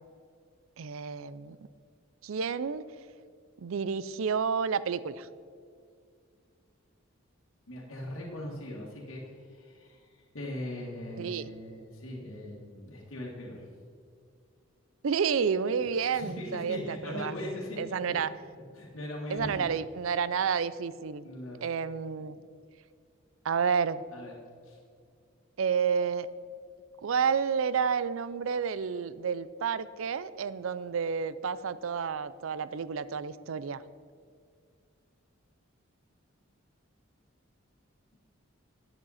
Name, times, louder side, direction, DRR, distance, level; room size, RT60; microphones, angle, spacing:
voice 1, 0.8-1.6 2.2-2.8 3.6-5.3 11.2-11.5 15.0-17.3 17.8-18.3 19.3-21.3 21.6-22.4 23.4-24.0 25.6-26.3 27.0-33.8, right 6 dB, 75° right, 16 dB, 0.4 m, -30 dB
voice 2, 7.7-13.6 16.1-18.0 18.8-19.6 21.2-21.6 24.1-24.3 24.6-24.8, left 1 dB, 80° left, -3 dB, 1.9 m, -40 dB
12.5 x 8.9 x 4.2 m, 2.2 s
head